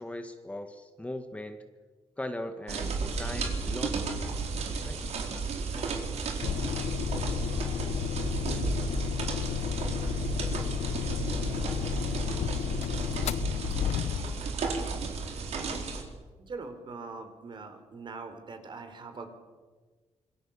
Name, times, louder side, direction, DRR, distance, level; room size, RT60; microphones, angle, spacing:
voice 1, 0.0-1.6 2.2-4.3 4.8-5.0, left 1 dB, 10° left, 6 dB, 1.6 m, -39 dB
sound 1, 2.7-16.0, right 4 dB, 70° right, 4.3 m, -33 dB
sound 2, 6.4-14.5, left 10 dB, 70° left, 0.6 m, -32 dB
voice 2, 16.4-19.3, right 4 dB, 45° right, 7 dB, 3.8 m, -42 dB
26.5 x 22.0 x 7.1 m, 1.4 s
cardioid pair, 120°, 11 cm